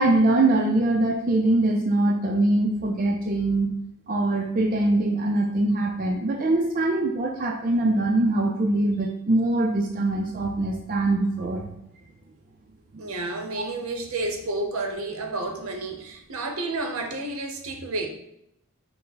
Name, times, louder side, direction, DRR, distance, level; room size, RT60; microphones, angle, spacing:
voice 1, 0.0-3.7 4.1-11.7 12.9-13.0, right 2 dB, 40° right, 1 dB, 0.4 m, -23 dB
voice 2, 13.0-18.1, right 2 dB, 80° right, 3 dB, 0.7 m, -30 dB
5.5 x 2.1 x 3.9 m, 0.79 s
head